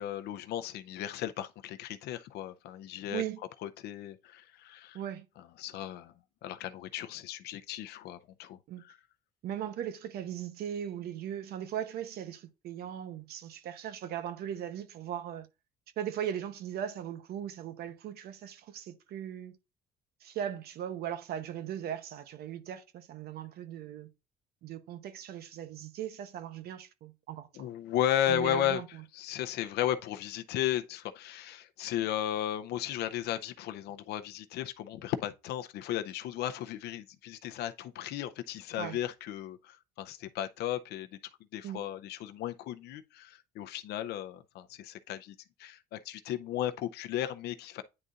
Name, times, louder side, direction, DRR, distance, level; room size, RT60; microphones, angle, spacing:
voice 1, 0.0-3.2 3.6-5.0 5.6-6.1 6.4-8.6 8.8-9.0 27.6-28.8 29.1-41.1 41.5-47.8, left 11 dB, 75° left, 0.6 m, -35 dB
voice 2, 3.1-3.4 4.9-5.3 8.7-8.8 9.4-15.5 16.0-19.6 20.2-24.1 24.6-27.7 28.2-29.0 38.8-39.0 41.6-41.9, right 10 dB, 70° right, 0.9 m, -38 dB
9.7 x 3.9 x 2.5 m
cardioid pair, 110°, 17 cm